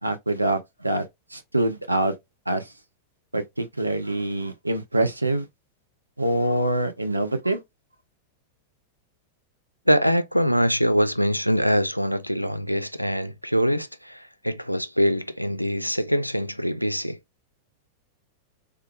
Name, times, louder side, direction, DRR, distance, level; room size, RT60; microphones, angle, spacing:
voice 1, 0.0-1.1 1.3-2.1 2.5-2.7 3.3-5.4 6.2-7.6, right 1 dB, 85° right, 0.6 m, -25 dB
voice 2, 9.9-17.2, equal, 90° left, 0.3 m, -23 dB
3.4 x 3.0 x 2.2 m
figure-of-eight pair, 90°, 0 cm